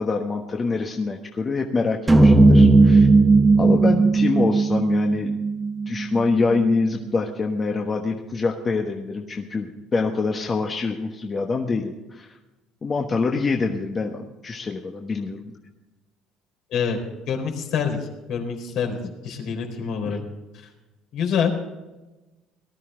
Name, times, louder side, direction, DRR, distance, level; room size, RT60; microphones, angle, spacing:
voice 1, 0.0-3.1 3.6-5.4 5.9-12.4 12.8-15.4 20.0-20.2, left 4 dB, 25° left, 2 dB, 1.2 m, -25 dB
sound 1, 2.1-6.4, right 3 dB, 10° right, 1.0 m, -16 dB
voice 2, 17.3-18.0 18.3-19.0 19.2-20.2 21.1-21.5, left 7 dB, 65° left, 3 dB, 4.0 m, -25 dB
19.0 x 12.5 x 3.8 m, 1.1 s
cardioid pair, 130°, 0 cm